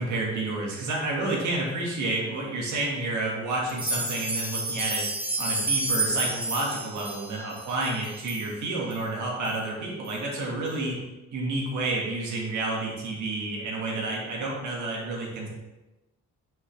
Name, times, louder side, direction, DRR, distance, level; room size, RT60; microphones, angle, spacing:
voice 1, 0.0-5.1 5.4-11.0 11.3-15.5, right 2 dB, 75° right, -2 dB, 1.9 m, -30 dB
sound 1, 3.7-8.4 8.9-9.0 9.4-9.5 10.0-10.1, right 2 dB, 5° right, 2.2 m, -30 dB
5.6 x 5.6 x 3.4 m, 1.1 s
cardioid pair, 90°, 30 cm